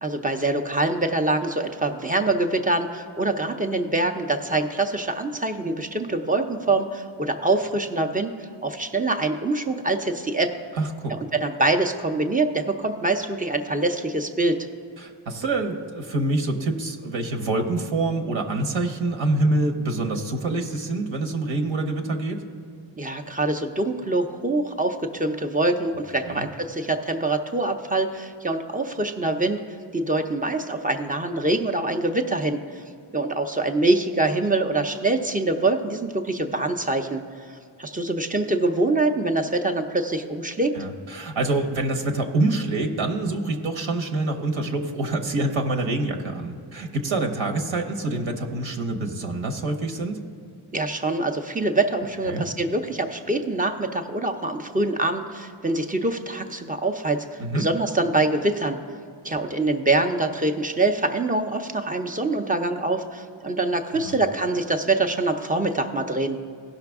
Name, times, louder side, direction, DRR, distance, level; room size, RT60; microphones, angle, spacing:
voice 1, 0.0-10.5 11.3-14.6 23.0-32.8 33.1-37.2 37.5-40.7 50.7-58.8 59.2-66.4, right 2 dB, 20° right, 6 dB, 0.5 m, -24 dB
voice 2, 10.7-11.1 15.0-22.4 26.3-26.5 40.7-50.2 52.2-52.4 57.4-57.7 63.9-64.2, right 2 dB, 70° right, 4 dB, 1.1 m, -26 dB
16.5 x 5.8 x 3.5 m, 2.3 s
wide cardioid pair, 135°, 48 cm